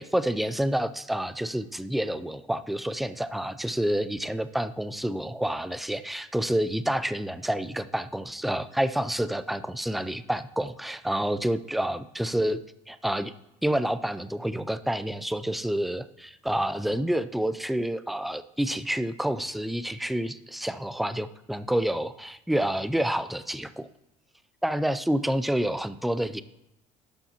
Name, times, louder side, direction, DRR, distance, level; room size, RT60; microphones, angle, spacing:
voice 1, 0.0-12.6 12.9-13.3 13.6-23.9 24.6-26.4, right 1 dB, ahead, 13 dB, 0.3 m, -28 dB
11.5 x 7.1 x 2.8 m, 0.91 s
cardioid pair, 135°, 16 cm